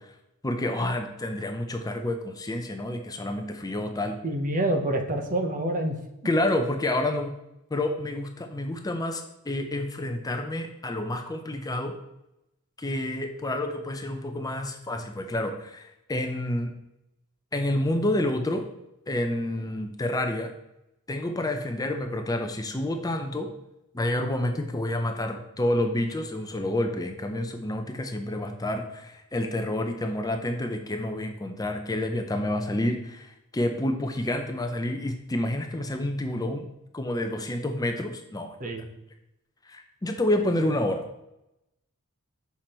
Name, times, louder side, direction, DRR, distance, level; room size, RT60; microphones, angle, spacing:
voice 1, 0.4-4.2 6.2-7.3 7.7-11.9 12.8-16.7 17.5-18.7 19.1-20.5 21.1-23.5 23.9-36.7 36.9-38.5 39.7-41.0, left 1 dB, 15° left, 5 dB, 0.6 m, -29 dB
voice 2, 4.2-6.0 38.6-38.9, right 1 dB, 40° right, 5 dB, 1.0 m, -27 dB
7.0 x 6.0 x 4.3 m, 0.88 s
head